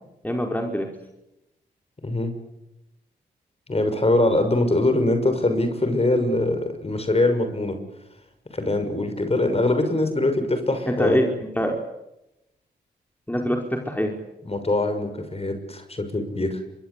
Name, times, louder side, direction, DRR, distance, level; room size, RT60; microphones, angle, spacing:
voice 1, 0.2-0.9 10.9-11.3 11.5-11.8 13.3-14.1, equal, 10° left, 2 dB, 5.1 m, -23 dB
voice 2, 2.0-2.3 3.7-7.8 8.5-11.2 14.4-16.6, left 2 dB, 35° left, 8 dB, 6.3 m, -23 dB
25.5 x 23.5 x 8.6 m, 0.90 s
supercardioid pair, 45°, 19 cm